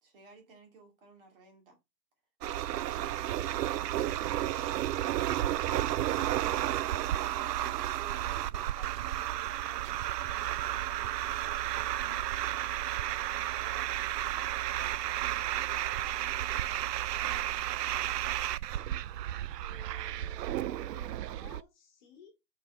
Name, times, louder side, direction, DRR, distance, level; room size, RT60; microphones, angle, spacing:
voice 1, 0.0-1.8 6.9-12.4 13.0-18.4, right 3 dB, 35° right, 2.5 m, -56 dB
sound 1, 2.4-21.6, right 13 dB, 80° right, 0.5 m, -32 dB
voice 2, 19.6-22.3, left 5 dB, 30° left, 1.7 m, -56 dB
5.6 x 4.7 x 4.9 m
hypercardioid pair, 170°, 48 cm